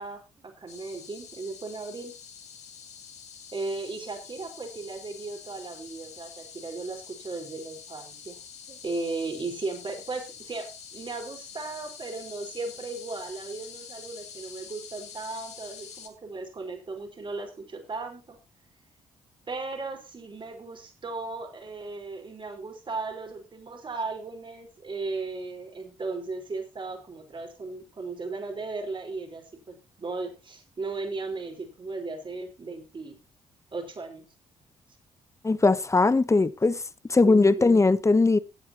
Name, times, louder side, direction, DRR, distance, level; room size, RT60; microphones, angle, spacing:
voice 1, 0.0-2.1 3.5-8.4 8.7-18.4 19.5-33.2 33.7-34.2 37.2-37.8, right 3 dB, 40° right, 4.8 m, -36 dB
sound 1, 0.7-16.1, left 7 dB, 70° left, 2.5 m, -46 dB
voice 2, 35.4-36.8 37.1-38.4, left 3 dB, 25° left, 1.0 m, -20 dB
18.0 x 8.5 x 3.0 m
supercardioid pair, 60°, 12 cm